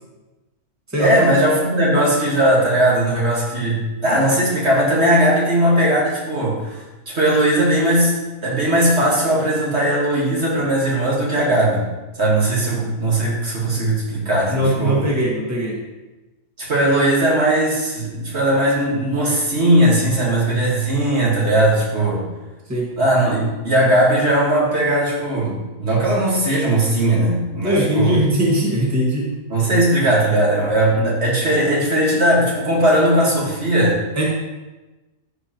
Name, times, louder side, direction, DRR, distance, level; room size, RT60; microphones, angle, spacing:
voice 1, 1.0-8.1 8.4-11.8 12.2-15.0 16.6-22.3 23.0-28.3 29.5-34.0, right 1 dB, 50° right, -5 dB, 1.9 m, -18 dB
voice 2, 14.5-15.8 22.7-22.9 27.6-29.3 34.2-34.3, right 1 dB, 10° right, -5 dB, 1.6 m, -20 dB
13.0 x 4.8 x 2.9 m, 1.1 s
omnidirectional pair, 1.5 m